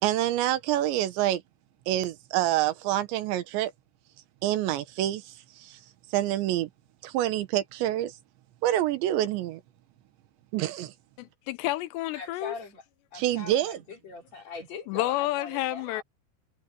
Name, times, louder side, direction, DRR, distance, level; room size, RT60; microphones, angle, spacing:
voice 1, 0.0-1.4 1.9-3.7 4.4-5.8 6.1-6.7 7.0-8.2 8.6-9.6 10.5-10.9 13.1-13.8, right 13 dB, 85° right, 3.4 m, -27 dB
voice 2, 11.2-12.5 14.9-16.0, left 16 dB, 85° left, 2.8 m, -30 dB
voice 3, 12.1-12.8 13.1-16.0, left 4 dB, 40° left, 4.9 m, -41 dB
omnidirectional pair, 5.1 m